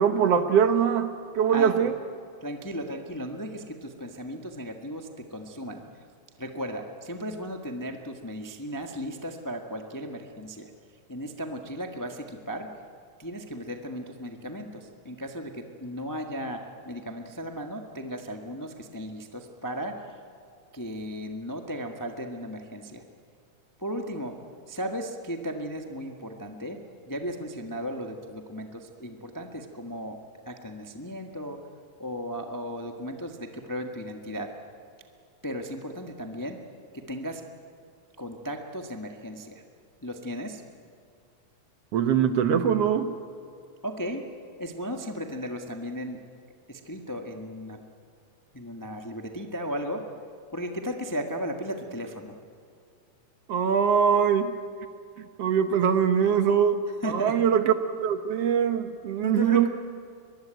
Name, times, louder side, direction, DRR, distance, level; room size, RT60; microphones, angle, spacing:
voice 1, 0.0-1.9 41.9-43.1 53.5-54.5 55.4-56.8 57.1-57.7 58.0-59.7, right 8 dB, 60° right, 8 dB, 1.8 m, -22 dB
voice 2, 1.5-1.9 2.4-5.8 6.4-10.7 11.1-12.7 13.2-20.1 20.7-23.0 23.8-24.4 24.7-26.8 27.1-31.6 32.0-34.6 35.4-36.6 36.9-37.4 38.2-39.6 40.0-40.6 43.8-44.3 44.6-46.2 46.7-47.8 48.5-50.1 50.5-52.3 57.0-57.5 59.2-59.7, equal, 30° left, 3 dB, 0.3 m, -35 dB
23.0 x 22.0 x 9.1 m, 2.3 s
omnidirectional pair, 3.6 m